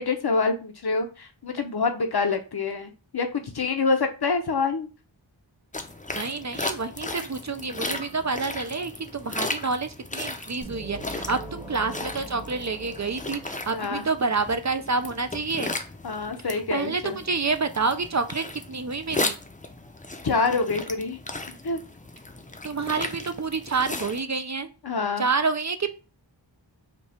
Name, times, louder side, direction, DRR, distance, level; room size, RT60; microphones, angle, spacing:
voice 1, 0.0-4.9 13.7-14.0 16.0-17.2 20.2-21.2 21.5-21.8 24.8-25.3, left 4 dB, 55° left, 6 dB, 0.8 m, -26 dB
sound 1, 5.7-24.2, left 2 dB, 15° left, 0.6 m, -36 dB
voice 2, 6.1-15.7 16.7-19.3 22.6-24.7 25.2-25.9, right 4 dB, 40° right, 9 dB, 0.5 m, -28 dB
sound 2, 10.6-14.4, right 2 dB, 10° right, 0.9 m, -42 dB
5.3 x 2.4 x 4.2 m, 0.33 s
wide cardioid pair, 60°, 46 cm